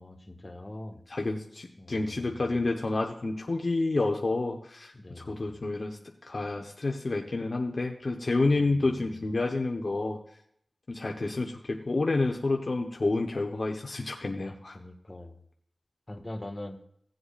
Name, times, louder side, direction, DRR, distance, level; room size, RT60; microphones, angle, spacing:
voice 1, 0.0-1.0 1.8-2.6 4.9-5.6 8.6-9.2 14.4-15.4 16.1-16.8, left 1 dB, 30° left, 3 dB, 1.7 m, -43 dB
voice 2, 1.1-10.2 10.9-14.8, left 2 dB, 60° left, 2 dB, 1.0 m, -29 dB
18.0 x 7.8 x 2.5 m, 0.70 s
wide cardioid pair, 65°, 0 cm